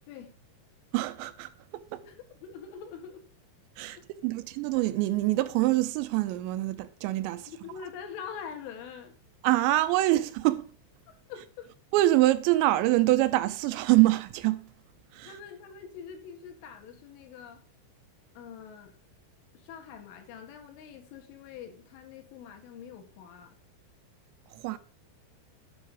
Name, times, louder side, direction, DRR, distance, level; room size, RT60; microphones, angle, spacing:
voice 1, 0.9-2.0 3.8-7.5 9.4-10.7 11.9-14.7 15.1-15.3 24.5-24.8, right 17 dB, 80° right, 2.8 m, -25 dB
voice 2, 2.0-3.2 3.9-4.3 7.5-9.1 11.1-11.7 15.2-17.6 18.4-18.9 19.5-23.5, left 7 dB, 90° left, 4.1 m, -44 dB
9.6 x 6.0 x 5.2 m
omnidirectional pair, 5.4 m